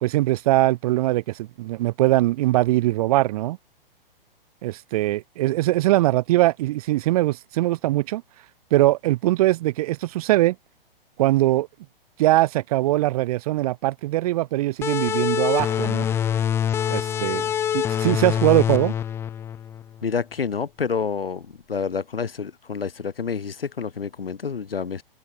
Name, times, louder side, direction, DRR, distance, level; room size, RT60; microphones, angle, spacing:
voice 1, 0.0-3.6 4.6-8.2 8.7-10.5 11.2-11.7 12.2-16.1 16.9-18.9, right 17 dB, 40° right, 1.1 m, -21 dB
sound 1, 14.8-20.1, left 9 dB, 10° left, 0.5 m, -25 dB
voice 2, 20.0-25.0, left 6 dB, 75° left, 1.7 m, -28 dB
figure-of-eight pair, 120°, 29 cm